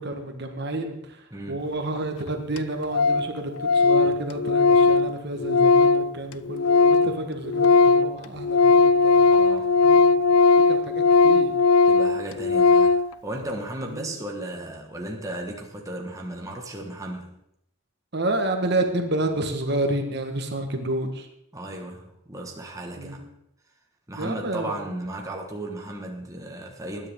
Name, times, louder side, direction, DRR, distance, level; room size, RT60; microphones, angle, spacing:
voice 1, 0.0-9.3 9.8-10.0 10.6-11.5 13.9-14.1 18.1-21.3 23.0-23.3 24.1-24.8, right 1 dB, 50° right, 5 dB, 1.5 m, -30 dB
voice 2, 1.3-1.6 9.3-9.8 11.9-17.4 21.5-23.3 24.1-27.1, right 1 dB, 15° right, 1 dB, 1.5 m, -35 dB
Organ, 2.0-2.1 2.3-2.4 2.6-2.7 2.9-3.3 3.6-7.2 7.5-13.1, left 4 dB, 90° left, 0.5 m, -18 dB
20.0 x 10.0 x 3.7 m, 0.79 s
head